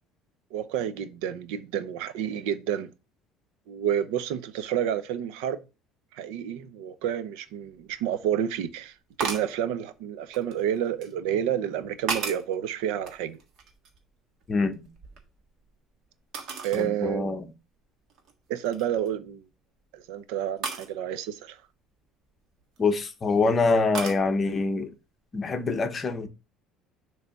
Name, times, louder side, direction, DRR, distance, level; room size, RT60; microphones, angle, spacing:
voice 1, 0.5-2.9 3.7-5.6 6.1-13.4 16.6-17.4 18.5-19.4 19.9-21.6, right 9 dB, 85° right, 0.7 m, -30 dB
sound 1, 7.7-7.8 9.2-9.6 10.3-11.1 11.7-12.6 13.0-14.1 14.4-15.7 16.3-16.9 17.4-17.5 18.1-18.3 18.7-19.1 20.6-20.9 22.6-23.1 23.9-24.2, right 5 dB, 50° right, 1.5 m, -35 dB
voice 2, 14.5-14.9 16.7-17.5 22.8-24.9 25.3-26.3, left 3 dB, 20° left, 0.8 m, -25 dB
6.7 x 3.3 x 5.8 m
cardioid pair, 165°, 0 cm